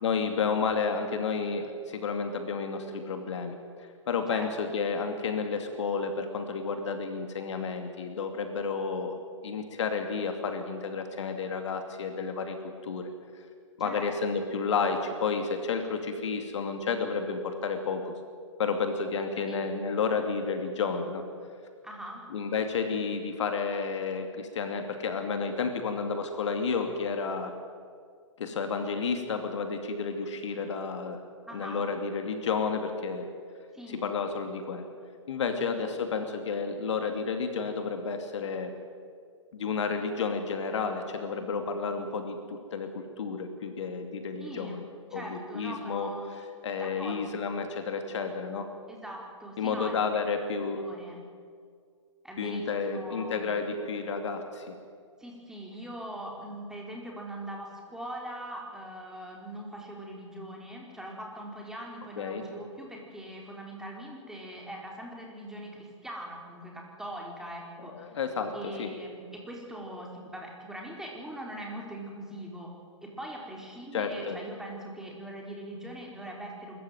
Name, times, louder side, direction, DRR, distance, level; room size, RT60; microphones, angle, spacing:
voice 1, 0.0-9.2 9.4-12.6 12.8-13.1 13.8-18.2 18.6-21.2 22.3-27.5 28.4-31.2 31.5-33.3 34.0-34.8 35.3-38.8 39.5-44.8 45.1-46.1 46.6-48.7 49.6-50.8 52.4-54.7 62.2-62.5 67.9-68.9 73.9-74.4, left 5 dB, 65° left, 6 dB, 2.7 m, -31 dB
voice 2, 4.3-4.8 13.8-14.1 19.5-19.6 21.8-22.2 31.5-31.8 33.7-34.1 35.6-35.7 36.1-36.2 44.4-44.8 45.1-46.2 46.8-47.3 48.9-50.0 50.3-50.4 50.8-51.2 52.2-53.4 55.2-68.1 68.5-72.7 73.0-76.8, right 1 dB, 5° right, -1 dB, 4.7 m, -41 dB
25.0 x 14.5 x 9.4 m, 2.1 s
hypercardioid pair, 125°, 16 cm